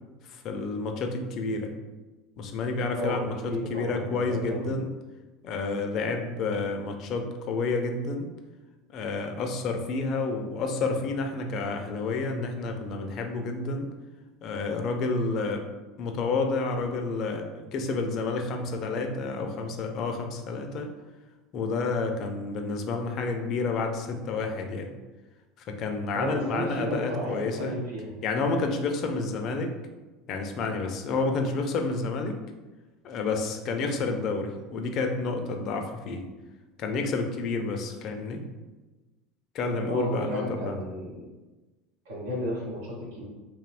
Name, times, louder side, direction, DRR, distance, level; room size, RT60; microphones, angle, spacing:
voice 1, 0.3-1.7 2.4-4.9 5.4-8.3 8.9-13.9 14.4-15.7 16.0-20.9 21.5-24.9 25.7-27.8 28.2-29.7 30.3-32.4 33.0-36.2 36.8-38.4 39.5-40.8, left 3 dB, 55° left, 4 dB, 0.4 m, -30 dB
voice 2, 2.9-4.7 26.1-28.1 33.9-34.2 39.9-41.2 42.0-43.2, equal, 90° right, -5 dB, 0.9 m, -33 dB
2.8 x 2.0 x 2.4 m, 1.2 s
hypercardioid pair, 95°, 0 cm